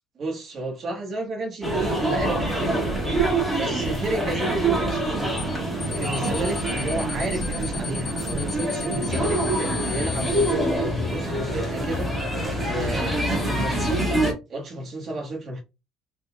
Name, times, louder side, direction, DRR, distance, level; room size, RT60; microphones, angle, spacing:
voice 1, 0.1-3.0 3.5-5.4 5.9-12.1 12.6-14.0 14.5-15.6, right 1 dB, 35° right, 1.4 m, -31 dB
sound 1, 1.6-14.3, right 1 dB, 5° right, 1.6 m, -25 dB
sound 2, 5.4-5.5 5.8-10.5, left 6 dB, 40° left, 1.0 m, -35 dB
4.1 x 3.6 x 2.4 m
cardioid pair, 160°, 0 cm